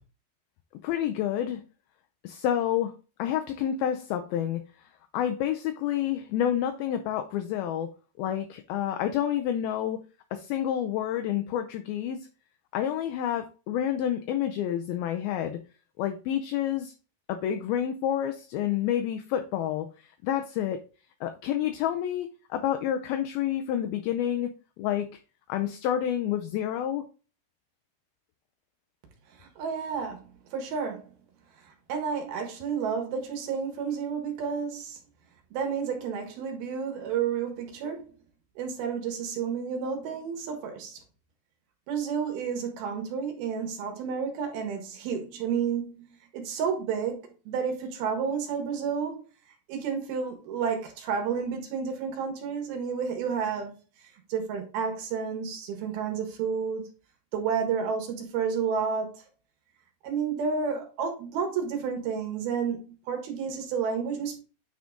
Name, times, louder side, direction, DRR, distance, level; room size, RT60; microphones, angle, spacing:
voice 1, 0.8-1.6 2.2-2.9 3.2-4.6 5.1-7.9 8.2-10.0 10.3-12.2 12.7-15.6 16.0-16.9 17.3-20.8 21.2-22.3 22.5-24.5 24.8-25.1 25.5-27.1, left 10 dB, 85° left, 2.2 m, -29 dB
voice 2, 29.4-31.1 31.9-35.0 35.5-38.0 38.6-41.0 41.9-49.2 49.7-53.7 54.3-56.9 57.3-59.2 60.0-64.4, right 6 dB, 70° right, 3.1 m, -31 dB
9.4 x 3.8 x 3.7 m
omnidirectional pair, 4.9 m